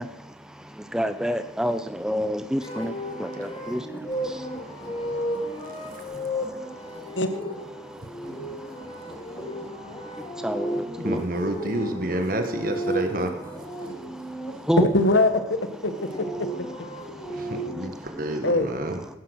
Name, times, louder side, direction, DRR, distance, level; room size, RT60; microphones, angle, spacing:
voice 1, 0.0-7.2 7.8-11.3 13.8-14.9 16.9-18.4, equal, 5° right, 0.5 m, -32 dB
sound 1, 2.6-14.5 15.7-17.9, equal, 25° left, 4.0 m, -34 dB
voice 2, 5.6-6.2 8.2-8.3 11.0-13.5 17.3-19.0, right 1 dB, 50° right, 1.3 m, -29 dB
voice 3, 14.8-16.5 18.4-18.7, left 2 dB, 75° left, 1.3 m, -22 dB
17.0 x 10.5 x 6.3 m
head